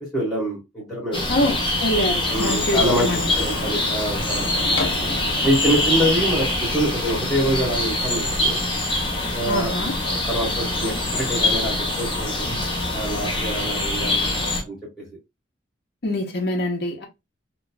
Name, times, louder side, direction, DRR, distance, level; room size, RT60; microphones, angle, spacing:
voice 1, 0.0-1.5 2.3-3.1 3.4-4.5 5.4-8.6 9.3-9.7 10.0-12.4 12.9-15.0, equal, ahead, 1.4 m, -25 dB
sound 1, 1.1-14.6, left 1 dB, 25° left, 0.8 m, -24 dB
voice 2, 1.3-3.3 9.4-9.9 16.0-17.0, left 1 dB, 60° left, 0.8 m, -25 dB
Printer, 2.3-6.9, left 2 dB, 90° left, 0.8 m, -33 dB
3.0 x 2.4 x 2.3 m
head